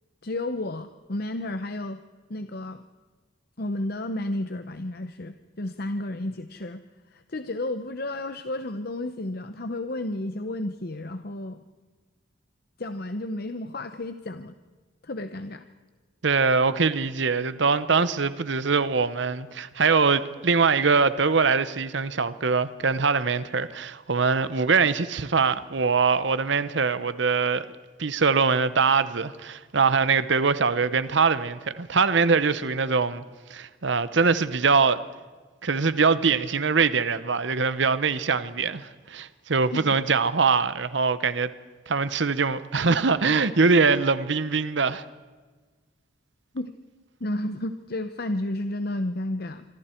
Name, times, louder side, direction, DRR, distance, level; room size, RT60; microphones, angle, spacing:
voice 1, 0.2-2.0 2.3-2.8 3.6-6.8 7.1-11.6 12.8-14.6 15.0-15.6 39.7-39.9 46.5-46.7 47.2-49.7, left 1 dB, 50° left, 0.9 m, -32 dB
voice 2, 16.2-27.7 28.0-33.2 33.5-35.0 35.6-41.5 41.9-45.0, right 4 dB, 65° right, 0.8 m, -23 dB
26.5 x 25.0 x 4.5 m
head